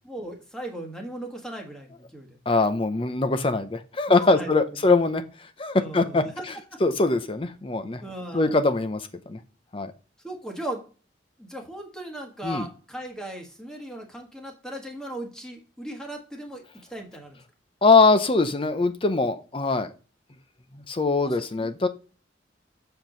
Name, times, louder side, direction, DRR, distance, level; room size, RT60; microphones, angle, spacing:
voice 1, 0.0-2.4 4.1-4.5 5.7-6.8 8.0-8.6 10.2-10.8 11.4-16.6 16.9-17.4 21.2-21.7, right 1 dB, 5° left, 2 dB, 1.4 m, -37 dB
voice 2, 2.5-5.2 5.6-6.5 6.8-8.0 8.3-9.4 9.7-9.9 12.4-12.7 17.8-19.9 20.7-21.9, left 3 dB, 30° left, 10 dB, 0.6 m, -22 dB
7.4 x 4.5 x 3.8 m, 0.36 s
head